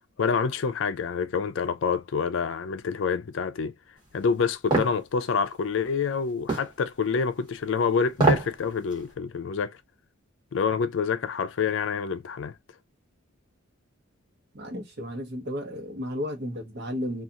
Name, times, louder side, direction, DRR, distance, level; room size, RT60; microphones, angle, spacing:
voice 1, 0.2-3.7 4.1-9.8 10.5-12.5, left 5 dB, 65° left, 0.4 m, -27 dB
sound 1, 4.7-5.0 6.5-6.7 8.1-8.5 8.9-9.0, right 3 dB, 25° right, 1.0 m, -22 dB
voice 2, 14.5-17.2, equal, 55° right, 0.9 m, -33 dB
2.8 x 2.4 x 2.4 m
head